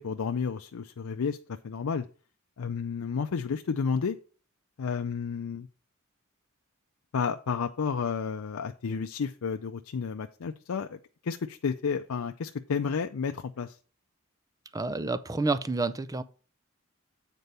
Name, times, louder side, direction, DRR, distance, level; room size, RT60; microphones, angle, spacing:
voice 1, 0.0-1.4 1.6-2.1 2.6-4.2 4.8-5.7 7.1-13.8, left 6 dB, 90° left, 0.5 m, -31 dB
voice 2, 14.7-16.2, right 3 dB, 15° right, 0.5 m, -29 dB
8.1 x 4.5 x 5.4 m
head